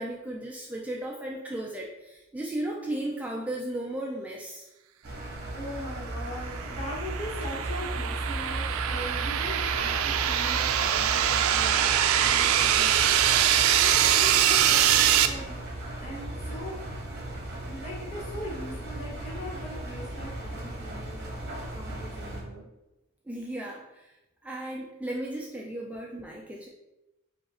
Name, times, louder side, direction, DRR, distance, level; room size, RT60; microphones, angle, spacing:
voice 1, 0.0-4.7 23.3-24.1 24.4-26.7, right 1 dB, 5° right, -2 dB, 0.4 m, -35 dB
Engine, 5.0-22.4, right 1 dB, 50° right, 1.1 m, -36 dB
voice 2, 5.5-13.0 13.5-15.7 16.0-16.8 17.4-21.4 21.7-22.6, left 1 dB, 35° left, -5 dB, 1.3 m, -40 dB
sound 1, 6.3-15.3, right 10 dB, 85° right, 0.4 m, -24 dB
5.0 x 2.5 x 4.1 m, 0.97 s
head